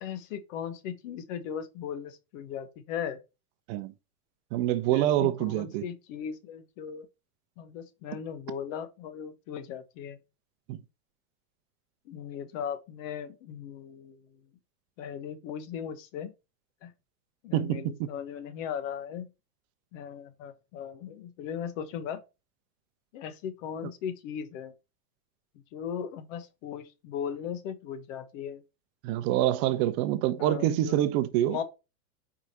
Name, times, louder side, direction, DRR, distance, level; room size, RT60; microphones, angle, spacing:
voice 1, 0.0-3.2 4.9-7.1 7.6-10.2 12.1-14.2 15.0-16.3 16.8-16.9 17.4-19.3 19.9-22.2 23.1-24.7 25.7-28.6 30.4-31.2 31.5-31.6, left 8 dB, 55° left, 1.3 m, -38 dB
voice 2, 4.5-5.8 10.7-10.8 17.5-18.1 29.0-31.6, right 13 dB, 45° right, 0.7 m, -26 dB
4.9 x 4.8 x 4.2 m
hypercardioid pair, 125°, 47 cm